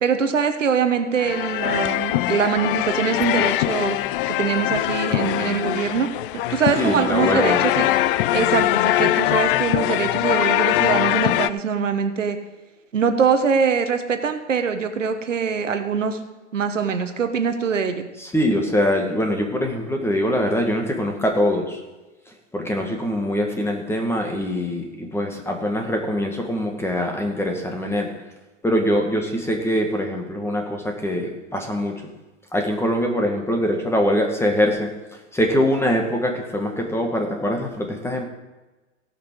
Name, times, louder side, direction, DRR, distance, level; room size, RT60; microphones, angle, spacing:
voice 1, 0.0-4.0 4.3-6.1 6.5-7.9 8.3-12.4 12.9-16.2 16.5-18.1, right 6 dB, 90° right, 7 dB, 1.2 m, -23 dB
sound 1, 1.2-11.5, left 15 dB, 50° left, 0.5 m, -22 dB
voice 2, 6.8-7.6 18.2-21.8 22.5-28.1 28.6-32.0 32.5-34.9 35.3-38.3, equal, 5° left, 3 dB, 1.9 m, -23 dB
17.5 x 6.0 x 4.7 m, 1.1 s
hypercardioid pair, 110°, 36 cm